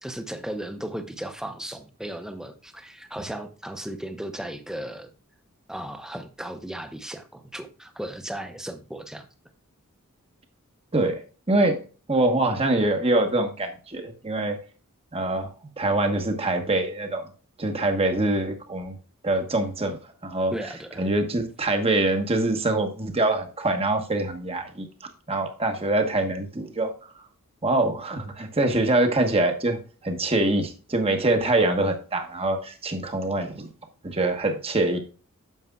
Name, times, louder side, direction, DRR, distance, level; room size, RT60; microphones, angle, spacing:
voice 1, 0.0-5.1 5.7-9.3 20.5-21.0, right 1 dB, 5° right, 8 dB, 0.7 m, -36 dB
voice 2, 11.5-11.8 12.1-14.6 15.1-15.5 15.8-17.3 17.6-19.0 19.2-20.0 20.2-20.5 21.0-24.9 25.3-26.9 27.6-29.8 30.0-33.7 34.0-35.0, right 2 dB, 25° right, 5 dB, 1.1 m, -24 dB
9.2 x 7.0 x 2.3 m, 0.36 s
head